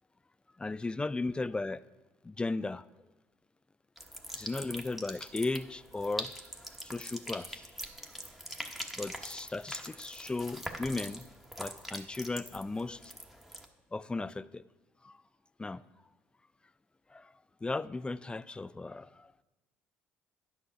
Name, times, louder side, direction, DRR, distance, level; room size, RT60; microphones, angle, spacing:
voice 1, 0.6-1.8 2.2-2.8 4.4-6.3 6.8-7.7 9.0-11.3 11.6-13.1 13.9-14.6 15.0-15.2 15.6-15.8 17.1-17.3 17.6-19.3, left 3 dB, 15° left, 17 dB, 0.4 m, -36 dB
sound 1, 4.0-13.7, equal, 5° right, 1.1 m, -43 dB
9.9 x 5.8 x 5.1 m, 1.1 s
hypercardioid pair, 60°, 6 cm